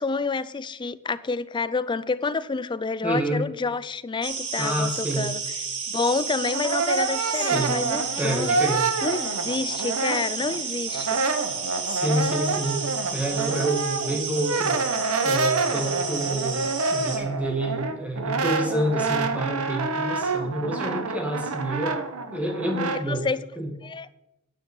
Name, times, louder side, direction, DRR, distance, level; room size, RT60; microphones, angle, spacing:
voice 1, 0.0-5.4 5.9-8.6 9.0-11.2 23.1-23.4 23.8-24.1, left 4 dB, 20° left, 0.4 m, -28 dB
voice 2, 3.0-3.5 4.6-5.3 7.3-7.7 8.2-8.9 11.8-14.8 15.2-22.0 22.3-23.2 23.6-23.7, right 1 dB, 5° right, 2.1 m, -28 dB
sound 1, 4.2-17.2, right 5 dB, 55° right, 2.4 m, -32 dB
Brass instrument, 6.2-10.6 10.9-23.0, right 4 dB, 70° right, 1.0 m, -27 dB
9.9 x 5.9 x 8.2 m
head